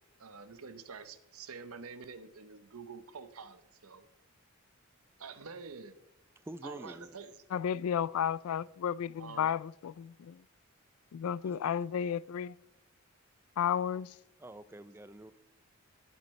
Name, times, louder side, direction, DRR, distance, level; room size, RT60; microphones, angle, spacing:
voice 1, 0.2-4.1 5.2-6.0 6.6-7.3 9.2-9.5, right 5 dB, 85° right, 0.8 m, -47 dB
voice 2, 6.4-7.2 11.2-11.8 14.4-15.3, right 1 dB, 10° right, 0.4 m, -47 dB
voice 3, 7.5-10.4 11.1-12.6 13.6-14.1, left 8 dB, 80° left, 0.3 m, -33 dB
19.0 x 8.1 x 3.2 m
head